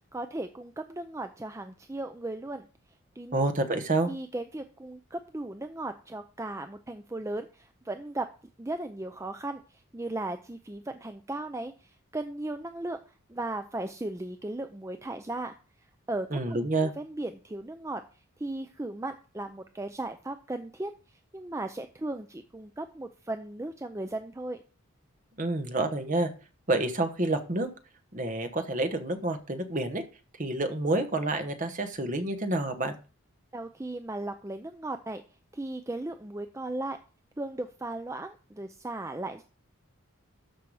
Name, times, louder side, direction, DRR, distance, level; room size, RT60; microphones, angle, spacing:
voice 1, 0.1-2.7 3.2-3.4 4.1-8.3 8.6-18.0 18.4-24.6 33.5-35.2 35.5-37.0 37.4-39.4, right 2 dB, 15° right, 8 dB, 0.5 m, -36 dB
voice 2, 3.3-4.1 16.3-16.9 25.4-26.3 26.7-27.7 28.1-30.0 30.4-32.9, right 2 dB, 35° right, 8 dB, 1.1 m, -28 dB
13.0 x 5.7 x 4.9 m, 0.36 s
head